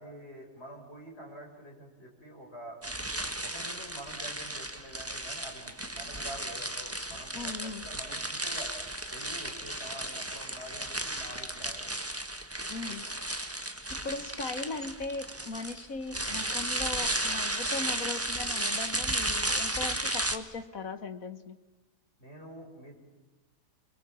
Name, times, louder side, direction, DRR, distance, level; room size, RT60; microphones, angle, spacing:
voice 1, 0.0-2.8 3.4-8.7 9.1-11.8 22.2-23.0, equal, 40° left, -1 dB, 4.8 m, -46 dB
sound 1, 2.8-20.4, right 1 dB, 10° right, 1.4 m, -34 dB
voice 2, 7.3-7.9 12.7-13.1 13.9-21.6, left 3 dB, 55° left, 10 dB, 1.9 m, -38 dB
29.5 x 22.5 x 7.3 m, 1.2 s
omnidirectional pair, 1.8 m